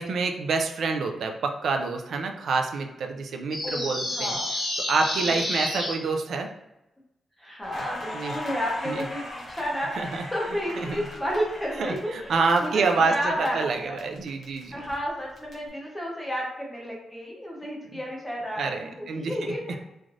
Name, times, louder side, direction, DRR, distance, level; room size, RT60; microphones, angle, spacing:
voice 1, 0.0-4.4 4.8-6.5 8.1-8.3 8.8-9.0 10.0-10.3 10.9-11.0 11.8-13.2 13.5-14.8 18.6-19.4, right 4 dB, 60° right, 4 dB, 0.3 m, -27 dB
sound 1, 3.5-5.9, left 1 dB, 60° left, 1.2 m, -29 dB
voice 2, 3.6-4.5 5.3-5.4 7.4-14.0 14.7-19.8, equal, 10° left, -3 dB, 0.7 m, -32 dB
Crackle, 7.6-13.5 13.8-15.5, left 1 dB, 40° left, 0.9 m, -39 dB
3.2 x 2.4 x 2.5 m, 0.92 s
wide cardioid pair, 175°, 0 cm